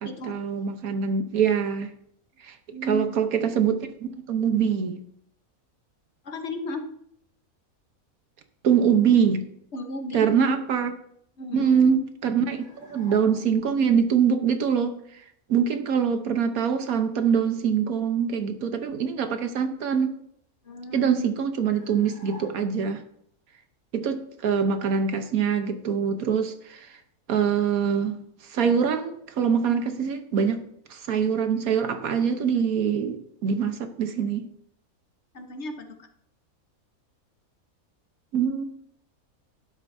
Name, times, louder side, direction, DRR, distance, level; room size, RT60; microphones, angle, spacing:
voice 1, 0.0-1.9 2.4-2.5 2.8-3.9 4.3-5.0 8.6-9.4 10.1-10.9 11.5-12.6 12.9-15.0 15.5-20.1 20.9-23.0 23.9-26.9 27.3-28.2 28.5-30.6 30.9-34.5 38.3-38.6, right 7 dB, 75° right, 7 dB, 1.4 m, -24 dB
voice 2, 2.7-3.1 6.2-6.9 9.7-10.3 11.4-11.9 20.6-21.2 35.3-36.1, left 1 dB, 55° left, 5 dB, 1.3 m, -35 dB
sound 1, 12.5-13.7 21.7-23.0, left 1 dB, 5° right, 4.5 m, -48 dB
12.0 x 11.0 x 2.7 m, 0.69 s
omnidirectional pair, 1.5 m